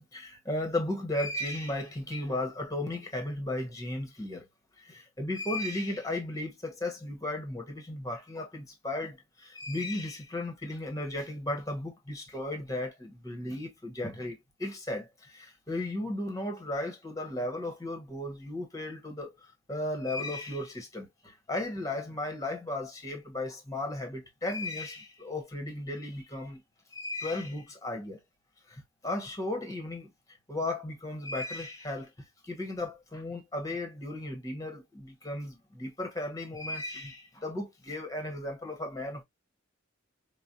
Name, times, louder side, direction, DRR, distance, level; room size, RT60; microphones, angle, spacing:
voice 1, 0.0-4.5 4.8-19.3 19.7-26.6 26.9-28.2 28.7-30.1 30.5-32.1 32.4-39.2, left 1 dB, 15° left, 1.1 m, -35 dB
4.8 x 2.2 x 2.7 m
head